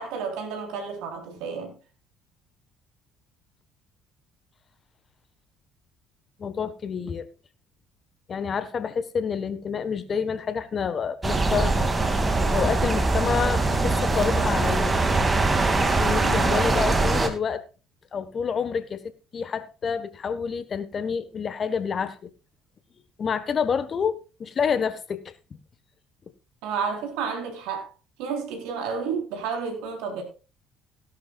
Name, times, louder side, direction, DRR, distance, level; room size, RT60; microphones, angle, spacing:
voice 1, 0.0-1.7 16.2-16.7 26.6-27.9 28.2-30.2, right 6 dB, 70° right, 4.1 m, -31 dB
voice 2, 6.4-7.3 8.3-11.9 12.5-14.9 16.0-17.6 18.1-22.3 23.2-25.6, left 6 dB, 45° left, 1.4 m, -28 dB
sound 1, 11.2-17.3, right 3 dB, 25° right, 2.6 m, -22 dB
17.0 x 11.5 x 2.5 m
hypercardioid pair, 55°, 0 cm